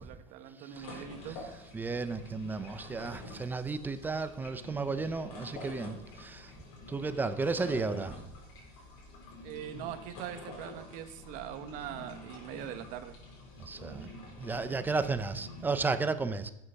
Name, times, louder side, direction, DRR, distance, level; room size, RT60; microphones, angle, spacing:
voice 1, 0.0-1.4 9.4-13.2 13.8-14.2 14.7-14.8, right 10 dB, 50° right, 7 dB, 1.2 m, -42 dB
sound 1, 0.7-15.6, left 2 dB, 70° left, 4.3 m, -48 dB
voice 2, 1.7-6.5 6.9-8.3 13.6-14.1 14.4-16.5, right 4 dB, 10° right, 11 dB, 0.5 m, -33 dB
12.0 x 8.0 x 5.8 m, 0.88 s
cardioid pair, 165°, 17 cm